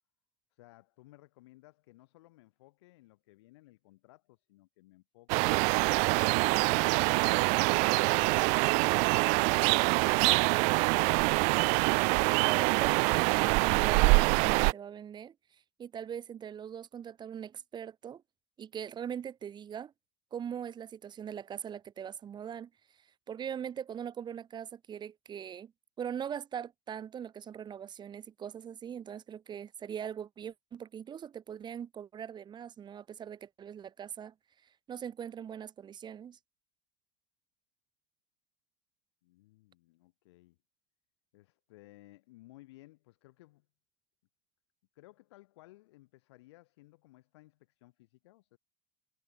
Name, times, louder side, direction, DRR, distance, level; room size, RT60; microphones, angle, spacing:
voice 1, 0.5-5.7 6.6-8.5 8.8-11.7 39.2-40.6 41.3-43.7 44.9-48.6, left 19 dB, 65° left, 3.4 m, -59 dB
sound 1, 5.3-14.7, right 36 dB, 50° right, 0.4 m, -25 dB
voice 2, 12.2-18.2 18.6-19.9 20.3-25.7 26.0-34.3 34.6-36.4, right 8 dB, 30° right, 1.4 m, -41 dB
hypercardioid pair, 85°, 15 cm